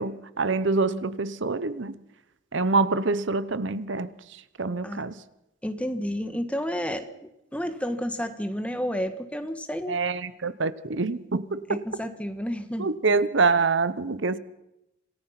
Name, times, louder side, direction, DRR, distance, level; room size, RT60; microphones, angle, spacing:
voice 1, 0.0-2.0 2.5-5.2 9.9-11.8 12.8-14.4, right 4 dB, 65° right, 15 dB, 0.9 m, -26 dB
voice 2, 5.6-10.0 11.7-12.9, equal, 5° left, 8 dB, 1.5 m, -31 dB
27.0 x 18.5 x 5.9 m, 0.87 s
head